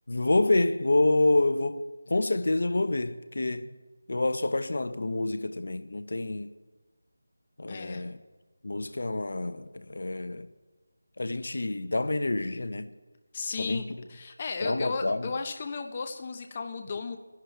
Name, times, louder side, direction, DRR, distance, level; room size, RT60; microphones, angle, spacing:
voice 1, 0.1-3.7 4.1-6.5 7.6-8.2 8.6-10.5 11.2-12.9 13.6-13.8 14.6-15.3, left 2 dB, 65° left, 0.9 m, -27 dB
voice 2, 7.7-8.0 13.3-17.2, left 4 dB, 25° left, 0.7 m, -35 dB
21.5 x 11.0 x 4.6 m
figure-of-eight pair, 170°, 0 cm